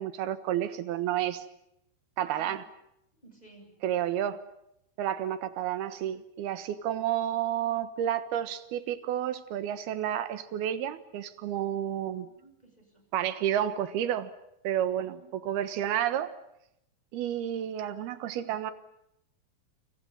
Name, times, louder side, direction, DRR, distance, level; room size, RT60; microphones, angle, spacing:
voice 1, 0.0-1.4 2.2-2.6 3.8-4.4 5.0-12.3 13.1-14.3 14.6-16.3 17.1-18.7, right 11 dB, 90° right, 11 dB, 3.3 m, -30 dB
voice 2, 2.2-2.7 3.2-4.4 12.2-13.1 15.0-15.3 17.9-18.3, right 2 dB, 10° left, 3 dB, 8.0 m, -55 dB
30.0 x 27.5 x 5.6 m, 0.80 s
omnidirectional pair, 4.3 m